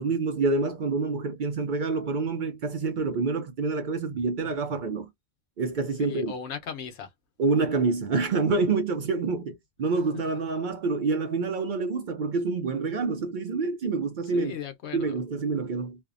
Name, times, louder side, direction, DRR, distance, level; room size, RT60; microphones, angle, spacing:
voice 1, 0.0-5.1 5.6-6.3 7.4-14.5 14.9-16.0, right 4 dB, 60° right, 0.6 m, -27 dB
voice 2, 6.0-7.1 10.1-10.2 14.3-15.3, left 8 dB, 80° left, 1.0 m, -37 dB
2.6 x 2.1 x 2.4 m
omnidirectional pair, 1.1 m